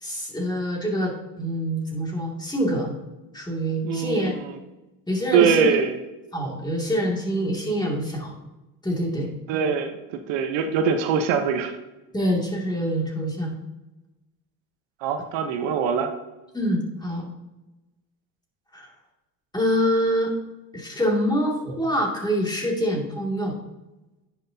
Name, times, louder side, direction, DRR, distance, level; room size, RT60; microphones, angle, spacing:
voice 1, 0.0-2.9 3.3-4.4 5.1-5.7 6.3-8.3 8.8-9.3 12.1-13.6 16.5-17.2 18.7-18.9 19.5-20.3 20.7-23.5, equal, 10° left, -2 dB, 2.3 m, -25 dB
voice 2, 3.8-4.6 5.3-6.0 9.5-11.7 15.0-16.1, right 6 dB, 70° right, 7 dB, 1.0 m, -23 dB
10.5 x 6.4 x 2.8 m, 1.0 s
supercardioid pair, 110°, 45 cm